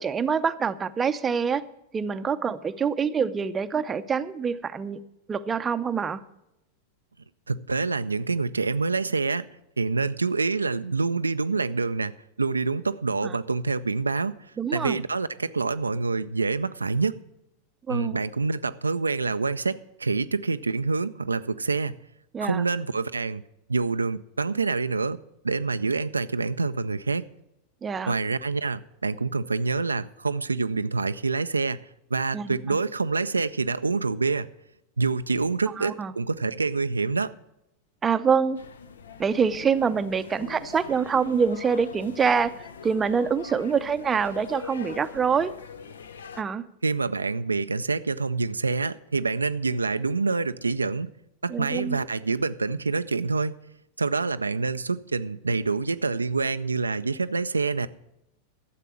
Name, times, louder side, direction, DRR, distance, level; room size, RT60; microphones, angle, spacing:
voice 1, 0.0-1.6 1.9-5.0 5.3-6.2 13.2-13.3 14.6-15.0 17.9-18.2 22.3-22.6 27.8-28.1 32.3-32.8 35.8-36.1 38.0-38.6 39.2-45.5 46.4-46.6 51.5-52.0, right 6 dB, 20° right, 12 dB, 0.6 m, -25 dB
voice 2, 7.5-9.5 9.8-12.1 12.4-14.3 14.7-17.2 17.9-22.0 22.4-23.4 23.7-27.3 28.1-31.8 32.1-34.5 35.0-37.3 46.8-51.1 51.4-53.6 54.0-57.9, right 4 dB, 80° right, 11 dB, 0.3 m, -26 dB
sound 1, 38.6-46.4, left 7 dB, 65° left, 0.6 m, -43 dB
12.5 x 7.5 x 7.1 m, 0.85 s
figure-of-eight pair, 90°, 0 cm